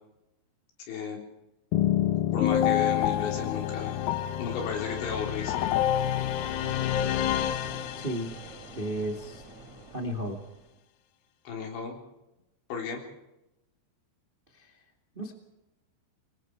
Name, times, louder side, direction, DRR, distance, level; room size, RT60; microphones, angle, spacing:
voice 1, 0.8-1.2 2.3-4.0 4.4-5.6 11.5-12.0 12.7-13.0, left 5 dB, 70° left, 1 dB, 5.9 m, -34 dB
sound 1, 1.7-8.5, left 11 dB, 85° left, 2.1 m, -27 dB
sound 2, 6.0-10.8, right 3 dB, 40° right, 5.1 m, -48 dB
voice 2, 8.0-8.3 8.7-9.4 9.9-10.4 14.5-14.8 15.1-15.3, right 1 dB, 75° right, 2 dB, 0.5 m, -34 dB
25.5 x 21.5 x 4.7 m, 0.94 s
omnidirectional pair, 5.6 m